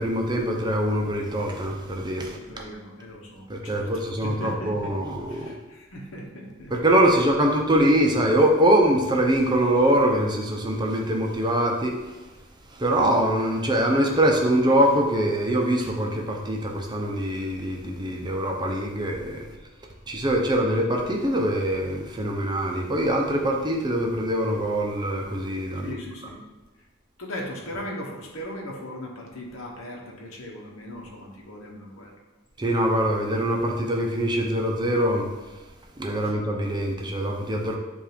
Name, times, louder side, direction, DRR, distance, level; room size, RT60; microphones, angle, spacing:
voice 1, 0.0-2.4 3.5-5.5 6.7-11.9 12.7-19.5 20.1-26.0 32.6-35.3 36.0-37.8, right 1 dB, 20° right, 1 dB, 0.7 m, -23 dB
voice 2, 2.2-6.7 25.8-26.4 27.2-32.2 36.1-36.4, equal, 70° left, -1 dB, 1.2 m, -38 dB
7.5 x 2.6 x 5.1 m, 1.2 s
head